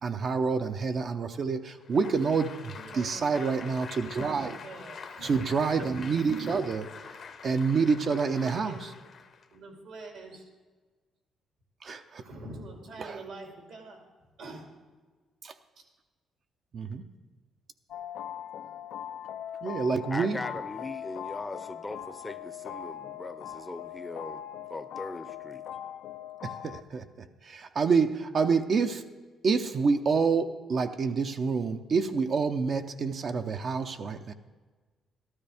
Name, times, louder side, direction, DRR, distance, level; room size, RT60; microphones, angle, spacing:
voice 1, 0.0-4.6 5.2-6.9 7.4-8.9 11.8-12.2 13.0-13.2 15.4-15.5 16.7-17.0 19.6-20.4 26.4-27.0 27.4-29.0 29.4-34.3, right 5 dB, 50° right, 6 dB, 0.6 m, -27 dB
Applause, 1.8-9.6, left 6 dB, 55° left, 0.8 m, -45 dB
voice 2, 2.7-3.6 4.6-5.5 8.3-8.9 9.5-10.4 12.1-14.0 14.4-14.7, right 2 dB, 80° right, 1 dB, 2.5 m, -44 dB
sound 1, 17.9-26.8, left 10 dB, 80° left, 0.4 m, -40 dB
voice 3, 20.1-24.4 24.7-25.6, left 2 dB, 20° left, 12 dB, 0.6 m, -39 dB
13.0 x 13.0 x 3.5 m, 1.4 s
cardioid pair, 90°, 0 cm